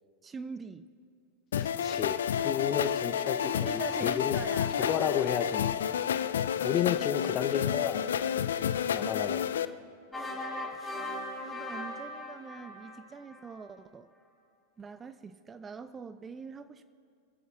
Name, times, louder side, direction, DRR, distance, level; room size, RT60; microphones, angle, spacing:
voice 1, 0.2-0.9 3.4-5.3 7.3-7.5 10.1-10.7 11.4-14.1 14.8-16.8, right 5 dB, 20° right, 12 dB, 0.4 m, -44 dB
sound 1, 1.5-9.6, left 9 dB, 65° left, 0.4 m, -30 dB
voice 2, 1.6-4.4 4.8-5.7 6.6-8.1 8.9-9.5, left 9 dB, 30° left, 11 dB, 0.7 m, -32 dB
sound 2, 10.1-13.6, left 2 dB, 10° left, 2.2 m, -39 dB
24.0 x 15.0 x 2.4 m, 2.3 s
figure-of-eight pair, 90°, 0 cm